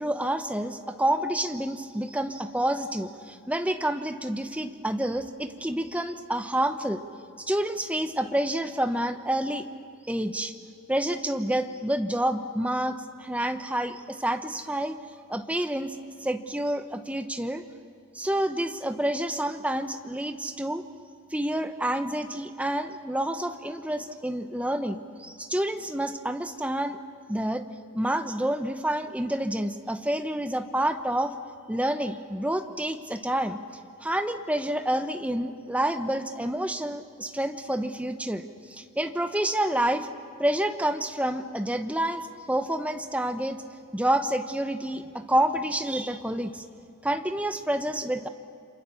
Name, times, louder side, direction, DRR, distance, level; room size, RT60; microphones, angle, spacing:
voice 1, 0.0-7.0 7.4-9.7 10.0-10.5 10.9-15.0 15.3-17.6 18.1-20.8 21.3-27.0 27.3-27.6 27.9-31.3 31.7-33.6 34.0-40.1 40.4-43.6 43.9-46.6 47.0-48.3, right 1 dB, 5° right, 8 dB, 0.9 m, -28 dB
28.5 x 25.5 x 7.1 m, 2.4 s
head